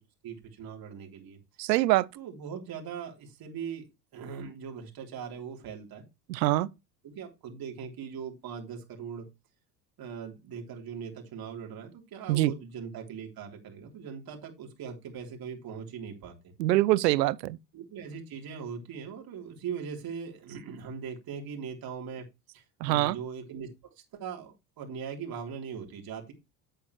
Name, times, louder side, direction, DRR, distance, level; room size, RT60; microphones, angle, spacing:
voice 1, 0.2-1.4 2.1-3.8 4.1-6.0 7.0-9.3 10.0-16.5 17.7-22.2 22.5-23.7 24.1-26.3, right 6 dB, 45° right, 3.8 m, -40 dB
voice 2, 1.6-2.1 6.3-6.7 12.3-12.5 16.6-17.6 22.8-23.2, right 16 dB, 80° right, 0.7 m, -24 dB
9.2 x 8.3 x 3.2 m
hypercardioid pair, 80°, 50 cm